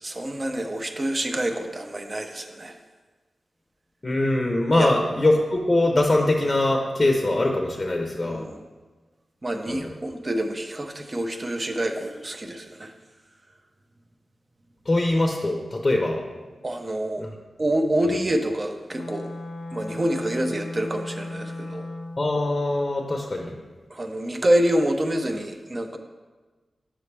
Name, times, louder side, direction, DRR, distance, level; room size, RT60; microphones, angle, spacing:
voice 1, 0.0-2.8 4.8-4.9 8.2-8.6 9.4-12.9 16.6-17.2 17.6-19.3 19.7-21.9 23.9-26.0, right 1 dB, 30° right, 5 dB, 0.6 m, -27 dB
voice 2, 4.0-8.5 9.7-9.8 14.9-16.2 17.2-17.3 22.2-23.6, left 2 dB, 30° left, 1 dB, 0.6 m, -22 dB
Wind instrument woodwind instrument, 18.9-22.3, left 2 dB, 85° left, 0.4 m, -36 dB
6.9 x 5.0 x 3.3 m, 1.3 s
wide cardioid pair, 80°, 0 cm